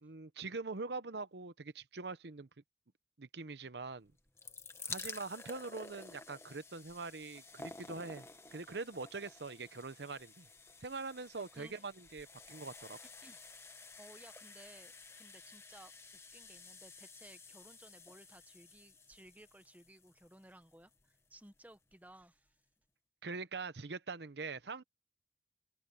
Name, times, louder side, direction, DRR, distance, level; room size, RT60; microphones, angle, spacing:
voice 1, 0.0-2.5 3.2-4.1 4.8-10.5 10.8-13.0 23.2-24.8, right 3 dB, 75° right, 0.9 m, -43 dB
sound 1, 4.1-21.2 21.9-22.0 22.2-22.3, left 3 dB, 15° left, 1.3 m, -52 dB
voice 2, 11.3-11.8 13.2-13.4 14.0-22.6, right 1 dB, 10° right, 1.1 m, -59 dB
open air
head